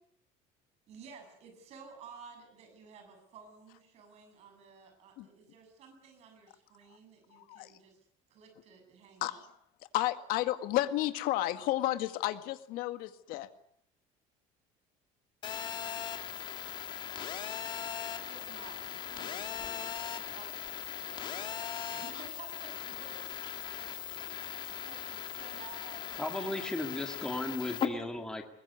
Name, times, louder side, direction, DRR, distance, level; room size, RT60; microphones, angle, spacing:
voice 1, 0.9-8.0 8.3-9.4 18.3-19.9 20.2-21.6 21.9-23.5 23.9-24.0 24.3-26.7 26.9-27.3, right 5 dB, 45° right, 4 dB, 7.7 m, -54 dB
voice 2, 7.3-7.7 9.2-9.4 9.9-13.5, left 15 dB, 65° left, 10 dB, 1.9 m, -32 dB
Telephone, 15.4-27.9, left 8 dB, 30° left, 2.0 m, -39 dB
voice 3, 26.2-28.4, left 1 dB, 5° left, 4 dB, 2.2 m, -35 dB
22.0 x 20.5 x 9.6 m, 0.66 s
cardioid pair, 170°, 16 cm